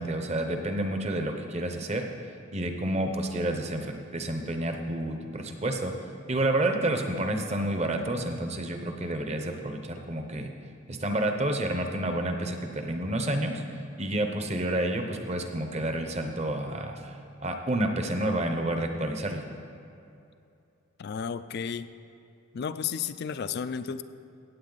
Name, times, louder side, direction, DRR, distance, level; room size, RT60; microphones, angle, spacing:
voice 1, 0.0-2.0 2.5-5.9 6.3-10.5 10.9-13.6 14.0-17.2 17.4-19.4, right 1 dB, 30° right, 5 dB, 0.8 m, -29 dB
voice 2, 21.0-21.9 22.5-24.0, left 7 dB, 50° left, 13 dB, 0.3 m, -33 dB
15.5 x 8.7 x 3.9 m, 2.6 s
head